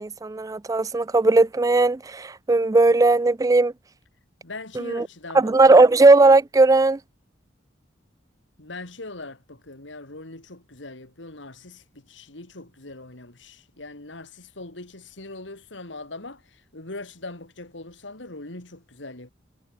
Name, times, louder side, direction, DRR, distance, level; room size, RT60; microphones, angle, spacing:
voice 1, 0.0-3.7 4.8-5.1 5.3-7.0, right 3 dB, 20° right, 0.4 m, -17 dB
voice 2, 4.4-5.9 8.6-19.3, left 2 dB, 75° left, 3.2 m, -41 dB
head